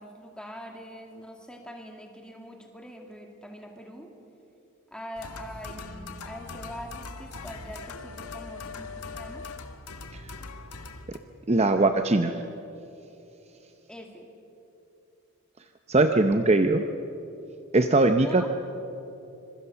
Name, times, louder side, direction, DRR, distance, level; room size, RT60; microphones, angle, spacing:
voice 1, 0.0-4.1 4.9-9.5 13.9-14.3 18.0-18.5, equal, 5° left, 2 dB, 2.4 m, -43 dB
sound 1, 5.1-11.2, left 3 dB, 90° left, 1.5 m, -41 dB
voice 2, 11.5-12.4 15.9-16.8 17.7-18.5, right 2 dB, 30° right, 7 dB, 0.7 m, -21 dB
26.0 x 23.0 x 7.0 m, 2.9 s
head